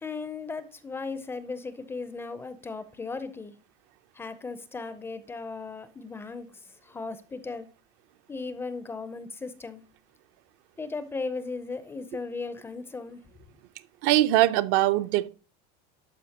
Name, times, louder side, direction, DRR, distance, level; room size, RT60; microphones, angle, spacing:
voice 1, 0.0-3.5 4.2-6.5 6.8-7.7 8.3-9.8 10.8-13.2, left 4 dB, 10° left, 0.5 m, -36 dB
voice 2, 14.0-15.3, right 15 dB, 55° right, 0.6 m, -22 dB
12.0 x 4.9 x 2.8 m
cardioid pair, 165°, 21 cm